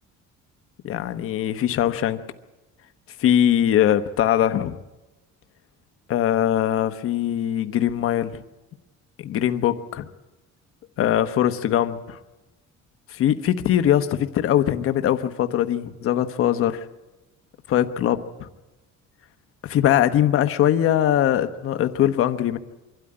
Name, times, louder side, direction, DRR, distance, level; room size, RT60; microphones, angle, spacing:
voice 1, 0.8-2.2 3.2-4.8 6.1-8.4 9.2-10.1 11.0-12.2 13.1-16.8 17.7-18.5 19.6-22.6, left 11 dB, 45° left, 9 dB, 1.1 m, -21 dB
24.5 x 12.5 x 9.7 m, 1.0 s
cardioid pair, 180°, 30 cm